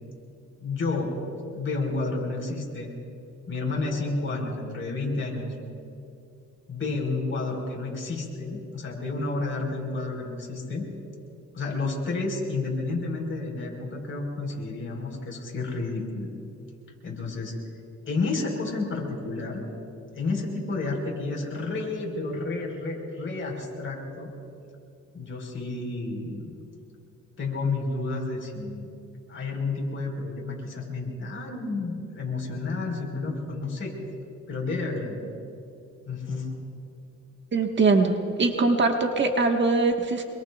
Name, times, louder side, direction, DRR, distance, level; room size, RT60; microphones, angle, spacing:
voice 1, 0.6-1.2 1.5-2.9 3.5-5.5 6.7-10.9 11.5-16.3 17.0-17.5 18.0-19.6 20.1-24.3 25.1-26.6 27.4-28.9 29.3-34.0 34.5-35.3 36.1-36.5, left 3 dB, 40° left, 0 dB, 4.5 m, -30 dB
voice 2, 37.5-40.2, right 3 dB, 40° right, 3 dB, 1.5 m, -22 dB
26.5 x 22.5 x 2.4 m, 2.5 s
cardioid pair, 90°, 30 cm